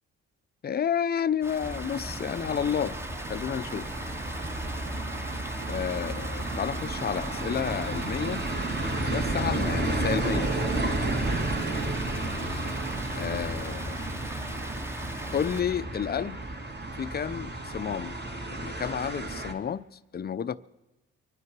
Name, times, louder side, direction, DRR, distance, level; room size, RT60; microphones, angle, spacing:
voice 1, 0.6-3.0 3.3-3.9 5.7-8.5 9.0-10.7 13.2-14.0 15.3-16.4 17.0-18.1 18.5-19.9 20.1-20.6, left 8 dB, 30° left, 0.6 m, -31 dB
Water, 1.4-15.6, right 1 dB, 10° right, 0.9 m, -40 dB
sound 1, 1.6-19.5, right 2 dB, 35° right, 2.3 m, -32 dB
24.0 x 9.8 x 6.0 m
cardioid pair, 90°, 30 cm